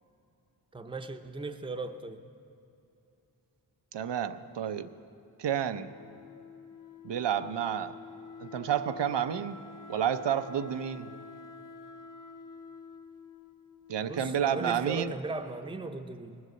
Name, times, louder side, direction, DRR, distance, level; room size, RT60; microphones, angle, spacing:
voice 1, 0.7-2.2 14.0-16.4, right 3 dB, 10° right, 6 dB, 0.6 m, -37 dB
voice 2, 3.9-4.9 5.4-5.9 7.0-8.0 8.4-9.6 9.9-11.1 13.9-15.1, right 9 dB, 90° right, 10 dB, 0.7 m, -30 dB
Wind instrument woodwind instrument, 5.7-14.4, left 5 dB, 50° left, 1.1 m, -49 dB
19.5 x 8.0 x 7.7 m, 2.8 s
wide cardioid pair, 95°, 41 cm